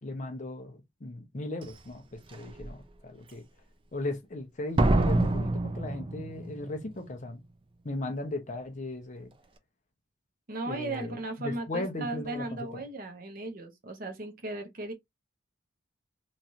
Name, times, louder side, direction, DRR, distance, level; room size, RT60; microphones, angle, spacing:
voice 1, 0.0-3.4 3.9-7.4 7.8-9.3 10.6-12.8, left 2 dB, 35° left, 0.6 m, -37 dB
Slam, 1.6-1.7 2.3-2.7 4.8-6.7 6.9-7.0, right 2 dB, 25° right, 0.4 m, -26 dB
voice 2, 10.5-14.9, right 2 dB, 45° right, 0.8 m, -36 dB
3.0 x 2.4 x 2.8 m
head